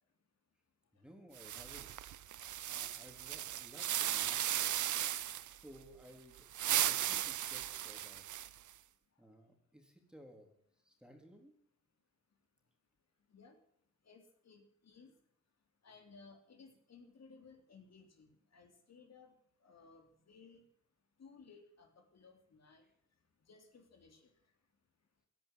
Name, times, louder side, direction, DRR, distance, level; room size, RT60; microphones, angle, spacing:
voice 1, 0.9-2.1 2.7-4.7 5.5-6.5 6.8-8.3 9.2-10.5 10.8-11.5, equal, 5° right, 2 dB, 3.9 m, -58 dB
sound 1, 1.4-5.6 6.4-8.7, right 11 dB, 70° right, 0.7 m, -36 dB
voice 2, 14.1-15.1 15.8-19.3 19.6-20.6 21.2-22.8 23.5-24.2, left 4 dB, 55° left, 4 dB, 3.3 m, -59 dB
16.5 x 10.5 x 7.8 m, 0.65 s
cardioid pair, 110°, 31 cm